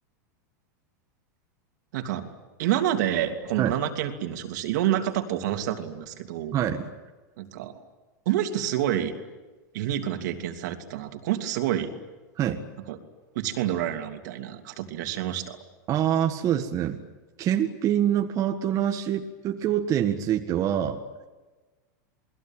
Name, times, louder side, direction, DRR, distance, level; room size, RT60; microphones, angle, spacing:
voice 1, 1.9-2.2 2.6-6.6 7.4-7.8 8.2-9.1 9.7-11.9 12.9-13.0 13.3-15.6, right 11 dB, 70° right, 6 dB, 3.0 m, -28 dB
voice 2, 6.5-6.9 12.4-12.6 15.9-17.0 17.4-21.0, right 10 dB, 35° right, 4 dB, 1.7 m, -25 dB
28.5 x 21.0 x 9.1 m, 1.2 s
supercardioid pair, 135°, 10 cm